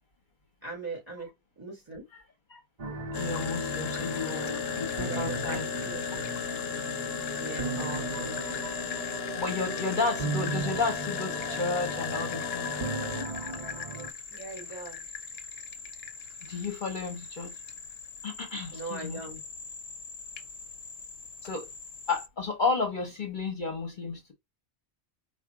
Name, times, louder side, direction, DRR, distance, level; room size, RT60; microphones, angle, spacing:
voice 1, 0.6-1.3 1.6-2.1 5.0-6.3 7.3-8.4 14.3-15.0 18.7-19.4, right 3 dB, 20° right, 3.6 m, -40 dB
sound 1, 2.8-14.1, right 3 dB, 40° right, 0.8 m, -37 dB
voice 2, 2.9-5.6 7.8-8.0 9.4-12.7 16.5-17.5 18.2-19.2 21.4-21.7 22.1-24.3, left 4 dB, 50° left, 0.9 m, -32 dB
sound 2, 3.1-22.3, left 7 dB, 70° left, 0.8 m, -37 dB
4.8 x 2.4 x 4.6 m
omnidirectional pair, 1.1 m